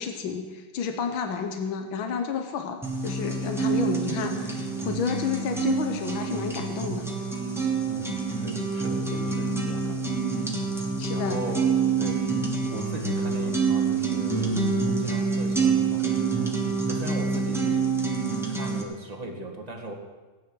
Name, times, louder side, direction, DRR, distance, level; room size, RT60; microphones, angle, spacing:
voice 1, 0.0-7.1 11.0-11.4, left 6 dB, 85° left, 5 dB, 1.8 m, -31 dB
sound 1, 2.8-18.8, right 5 dB, ahead, 1.6 m, -27 dB
voice 2, 7.9-10.1 11.1-11.7 12.0-12.3 12.7-16.6 16.9-17.9 18.6-19.9, right 2 dB, 20° right, 1 dB, 1.8 m, -38 dB
17.5 x 9.8 x 6.2 m, 1.3 s
omnidirectional pair, 2.1 m